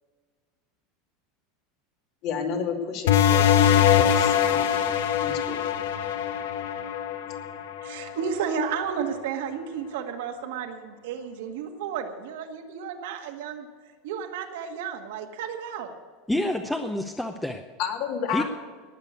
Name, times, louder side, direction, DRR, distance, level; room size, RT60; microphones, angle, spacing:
voice 1, 2.2-4.8 5.2-5.6 17.8-18.4, left 6 dB, 55° left, 2 dB, 2.5 m, -31 dB
sound 1, 3.1-8.3, left 9 dB, 90° left, 1.1 m, -22 dB
voice 2, 7.8-13.7 14.0-15.9, right 7 dB, 85° right, 3 dB, 1.9 m, -32 dB
voice 3, 16.3-17.6 18.3-18.4, left 1 dB, 5° left, 5 dB, 0.7 m, -28 dB
19.0 x 6.7 x 8.1 m, 1.5 s
supercardioid pair, 140°, 0 cm